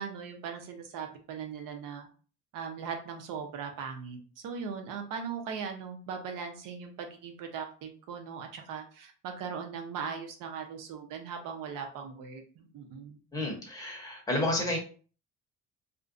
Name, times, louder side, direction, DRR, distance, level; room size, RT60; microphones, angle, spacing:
voice 1, 0.0-2.1 2.5-4.2 4.4-13.2, right 6 dB, 90° right, 4 dB, 0.7 m, -39 dB
voice 2, 13.3-14.8, left 1 dB, 10° left, -1 dB, 0.8 m, -31 dB
2.5 x 2.1 x 2.4 m, 0.39 s
cardioid pair, 145°, 31 cm